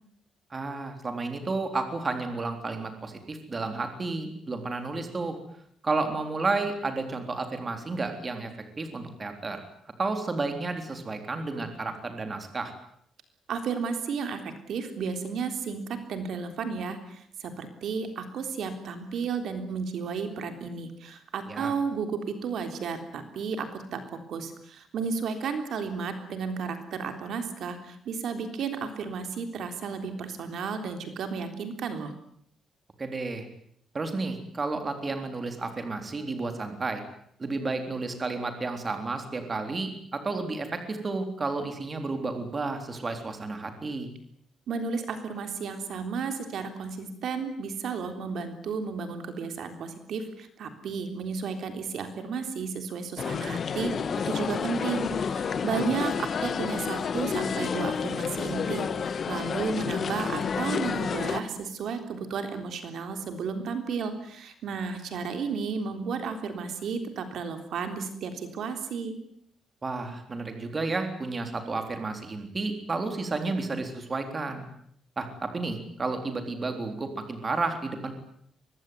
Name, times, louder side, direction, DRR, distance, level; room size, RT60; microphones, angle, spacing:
voice 1, 0.5-5.4 5.8-8.5 8.8-9.6 10.0-12.7 21.5-21.7 33.0-33.5 33.9-37.0 37.4-44.1 55.5-55.9 69.8-74.7 75.2-78.1, right 3 dB, 25° right, 6 dB, 3.7 m, -32 dB
voice 2, 13.5-24.0 24.3-32.1 44.7-53.9 54.3-69.1, right 5 dB, 60° right, 7 dB, 3.6 m, -33 dB
sound 1, 53.2-61.4, left 6 dB, 40° left, 1.4 m, -30 dB
24.5 x 20.5 x 9.6 m, 0.68 s
cardioid pair, 155°, 0 cm